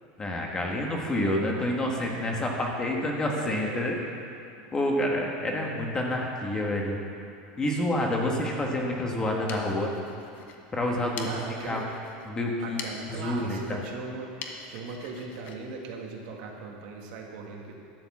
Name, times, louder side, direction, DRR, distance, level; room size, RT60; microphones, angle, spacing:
voice 1, 0.2-4.0 4.7-7.0 7.6-9.9 10.7-11.3 11.6-11.8 12.2-12.8 13.1-13.8, left 1 dB, 15° left, 0 dB, 1.4 m, -28 dB
voice 2, 3.3-3.9 5.4-5.7 11.2-11.9 12.6-14.3 14.7-17.8, right 4 dB, 65° right, 0 dB, 1.8 m, -39 dB
sound 1, 9.2-16.7, left 5 dB, 40° left, 1.1 m, -45 dB
12.0 x 7.1 x 7.2 m, 2.6 s
supercardioid pair, 155°, 5 cm